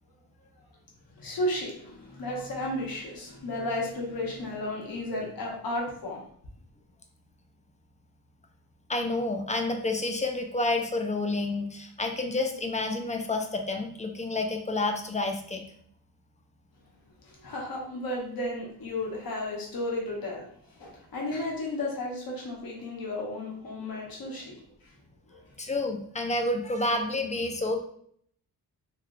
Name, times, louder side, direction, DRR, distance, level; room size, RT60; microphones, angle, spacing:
voice 1, 1.2-6.2 17.2-24.9 25.3-25.4, left 1 dB, 65° left, -2 dB, 1.1 m, -33 dB
voice 2, 8.9-15.6 25.6-27.8, left 2 dB, 20° left, 4 dB, 0.3 m, -29 dB
3.0 x 3.0 x 2.5 m, 0.64 s
wide cardioid pair, 120°, 39 cm